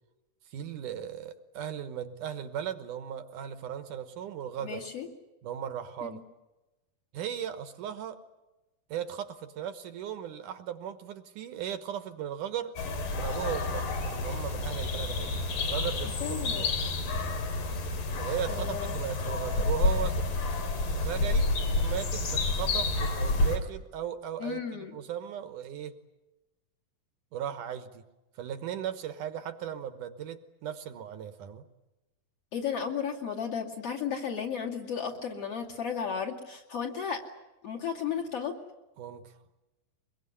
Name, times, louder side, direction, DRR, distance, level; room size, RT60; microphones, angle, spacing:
voice 1, 0.5-4.8 5.4-6.2 7.1-8.2 8.9-12.8 13.1-15.3 15.7-16.8 18.2-20.2 20.8-26.0 27.3-28.1 28.4-31.7 39.0-39.4, right 9 dB, 65° right, 10 dB, 2.5 m, -37 dB
voice 2, 4.6-5.1 6.0-6.2 16.0-16.7 18.4-18.9 24.4-25.0 32.5-37.2 37.6-38.5, left 7 dB, 45° left, -1 dB, 3.2 m, -34 dB
sound 1, 12.8-23.6, left 2 dB, 65° left, 4.4 m, -29 dB
24.0 x 22.0 x 9.7 m, 1.0 s
omnidirectional pair, 4.2 m